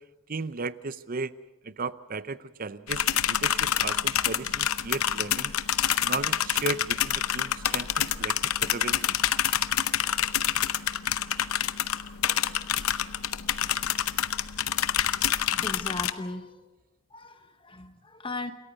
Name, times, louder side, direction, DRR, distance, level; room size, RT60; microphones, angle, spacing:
voice 1, 0.3-1.3 1.6-5.5 6.0-9.2, right 3 dB, 40° right, 15 dB, 0.6 m, -35 dB
sound 1, 2.9-16.1, left 10 dB, 75° left, 0.8 m, -27 dB
voice 2, 15.5-16.6 17.1-18.5, left 2 dB, 25° left, 8 dB, 1.0 m, -37 dB
28.0 x 14.0 x 6.8 m, 1.2 s
head